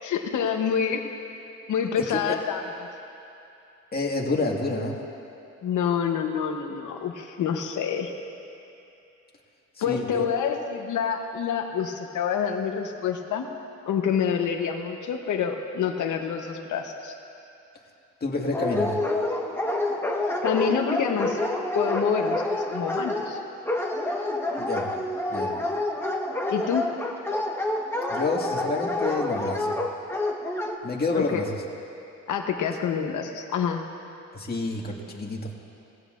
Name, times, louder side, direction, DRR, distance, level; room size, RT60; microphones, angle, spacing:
voice 1, 0.0-1.1 1.7-2.6 5.6-8.1 9.8-13.5 13.9-17.1 20.4-21.4 21.7-23.4 26.5-26.9 31.1-31.5 32.3-33.8, left 7 dB, 85° left, 4 dB, 1.0 m, -27 dB
voice 2, 1.9-2.4 3.9-5.0 9.8-10.3 18.2-18.9 24.6-24.9 25.3-25.5 28.1-29.8 30.8-31.6 34.3-35.5, left 3 dB, 30° left, -2 dB, 1.9 m, -28 dB
Dog, 18.5-30.7, left 2 dB, 10° left, 1.3 m, -28 dB
20.5 x 16.0 x 2.6 m, 2.7 s
cardioid pair, 90°, 30 cm